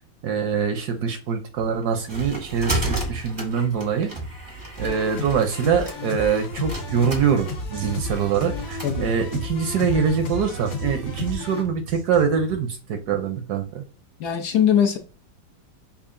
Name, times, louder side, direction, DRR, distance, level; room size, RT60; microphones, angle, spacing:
voice 1, 0.2-4.1 4.8-13.8, right 6 dB, 70° right, 1.0 m, -24 dB
sound 1, 1.6-8.9, right 1 dB, 25° right, 0.4 m, -33 dB
sound 2, 4.8-11.6, left 5 dB, 90° left, 1.7 m, -33 dB
sound 3, 6.5-12.6, right 8 dB, 90° right, 0.6 m, -36 dB
voice 2, 14.2-15.0, left 9 dB, 70° left, 1.1 m, -20 dB
5.6 x 2.3 x 2.4 m
omnidirectional pair, 2.0 m